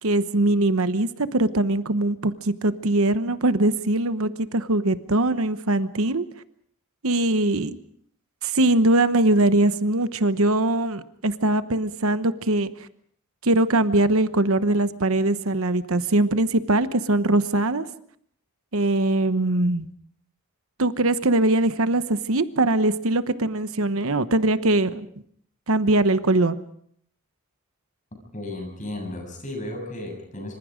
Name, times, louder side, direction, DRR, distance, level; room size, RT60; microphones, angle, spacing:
voice 1, 0.0-6.2 7.0-7.8 8.4-12.7 13.4-17.8 18.7-19.9 20.8-25.1 25.7-26.6, right 2 dB, 65° right, 11 dB, 1.1 m, -21 dB
voice 2, 28.3-30.6, left 1 dB, 35° left, 3 dB, 7.7 m, -34 dB
26.5 x 25.5 x 5.2 m, 0.65 s
head